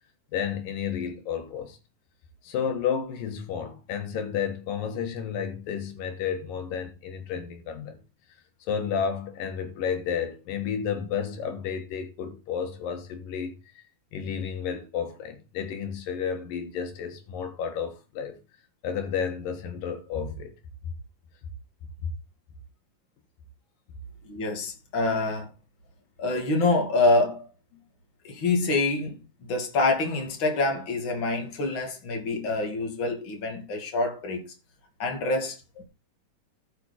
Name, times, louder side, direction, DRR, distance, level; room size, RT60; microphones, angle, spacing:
voice 1, 0.3-1.8 2.4-8.0 8.6-13.5 14.1-18.4 18.8-20.5, left 7 dB, 85° left, 3.2 m, -31 dB
voice 2, 24.2-25.5 26.2-27.5 28.2-34.5 35.0-35.8, left 2 dB, 40° left, 2.8 m, -26 dB
14.0 x 6.0 x 4.3 m
omnidirectional pair, 3.8 m